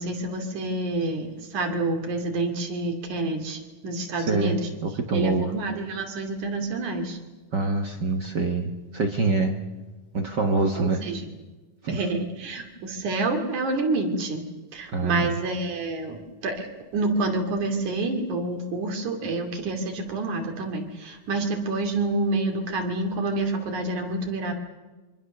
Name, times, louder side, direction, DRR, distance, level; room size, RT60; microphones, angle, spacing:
voice 1, 0.0-4.7 5.1-7.2 10.7-11.3 11.9-14.5 14.7-24.5, right 2 dB, 70° right, 3 dB, 4.0 m, -28 dB
voice 2, 4.2-5.5 7.5-9.6 10.1-11.0 11.8-12.0 14.9-15.3, right 3 dB, 45° right, 4 dB, 1.5 m, -25 dB
25.5 x 24.5 x 6.8 m, 1.2 s
omnidirectional pair, 3.6 m